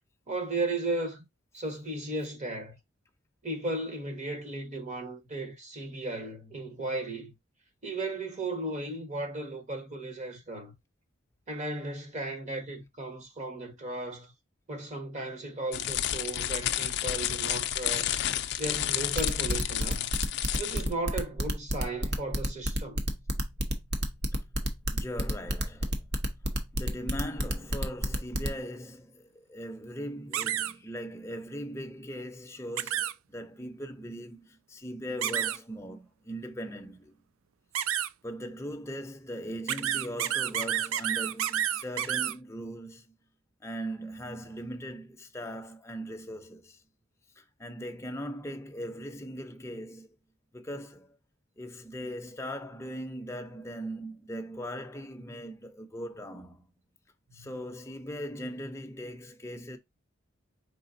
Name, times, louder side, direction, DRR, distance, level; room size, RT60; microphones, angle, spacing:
voice 1, 0.3-1.2 1.5-2.7 3.4-7.3 7.8-10.7 11.5-14.3 14.7-18.2 18.6-20.1 20.6-23.0, right 2 dB, 35° right, 1.2 m, -35 dB
sound 1, 15.7-20.9, left 11 dB, 55° left, 0.4 m, -31 dB
sound 2, 19.2-28.5, equal, 55° right, 0.9 m, -29 dB
voice 2, 24.9-26.1 26.7-37.1 38.2-43.1 43.6-46.8 47.4-50.1 50.5-51.2 51.6-56.6 57.3-59.8, equal, 15° left, 0.6 m, -39 dB
sound 3, 30.3-30.7 32.8-33.1 35.2-35.6 37.8-38.1 39.7-42.3, right 10 dB, 75° right, 0.3 m, -29 dB
4.9 x 3.6 x 2.6 m
head